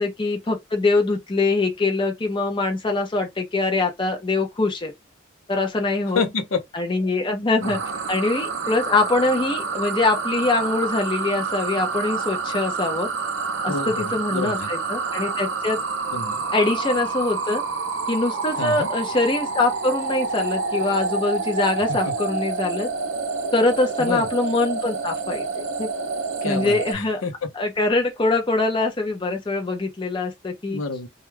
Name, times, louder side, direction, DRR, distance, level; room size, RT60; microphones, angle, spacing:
voice 1, 0.0-4.9 5.5-6.2 6.7-7.8 8.1-13.1 13.6-15.8 16.5-17.6 18.1-22.9 23.5-25.9 26.4-27.2 27.6-30.8, left 2 dB, 25° left, 0.5 m, -23 dB
voice 2, 6.1-6.6 7.6-7.8 13.7-14.7 16.1-16.4 18.6-18.9 21.9-22.1 24.0-24.3 26.4-27.5 30.7-31.1, left 4 dB, 85° left, 0.6 m, -28 dB
sound 1, 7.6-26.9, right 4 dB, 70° right, 0.6 m, -28 dB
2.3 x 2.2 x 3.1 m
head